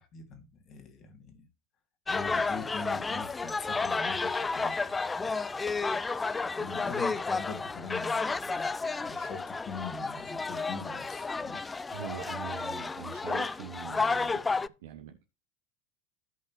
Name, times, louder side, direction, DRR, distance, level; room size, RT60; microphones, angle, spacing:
voice 1, 0.0-1.5 2.1-5.4 6.5-8.7 9.0-11.6, left 5 dB, 40° left, 2.6 m, -43 dB
sound 1, 2.1-14.7, left 4 dB, 15° left, 0.4 m, -32 dB
voice 2, 11.9-14.4 14.8-15.3, right 10 dB, 70° right, 0.9 m, -43 dB
14.0 x 5.5 x 3.1 m
figure-of-eight pair, 80°, 0 cm